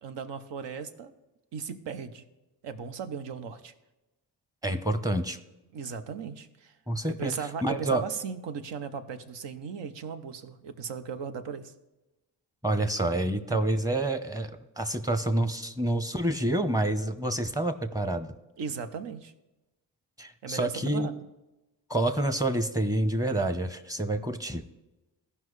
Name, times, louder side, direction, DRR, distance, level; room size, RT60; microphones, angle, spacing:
voice 1, 0.0-1.1 1.5-2.2 2.6-3.7 5.7-6.7 7.1-11.7 18.6-19.3 20.4-21.3, right 6 dB, 70° right, 9 dB, 0.9 m, -37 dB
voice 2, 4.6-5.4 6.9-7.3 7.6-8.0 12.6-18.3 20.2-21.1 21.9-24.6, right 1 dB, 10° right, 10 dB, 0.8 m, -28 dB
15.0 x 5.5 x 3.2 m, 1.0 s
supercardioid pair, 50°, 44 cm